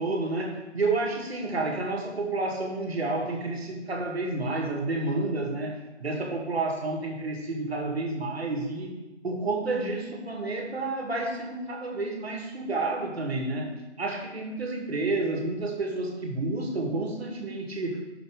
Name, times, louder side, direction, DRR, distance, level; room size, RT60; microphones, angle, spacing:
voice 1, 0.0-8.9 9.2-13.7 14.0-18.0, right 2 dB, 60° right, 2 dB, 2.1 m, -30 dB
11.0 x 6.6 x 3.7 m, 1.1 s
figure-of-eight pair, 155°, 36 cm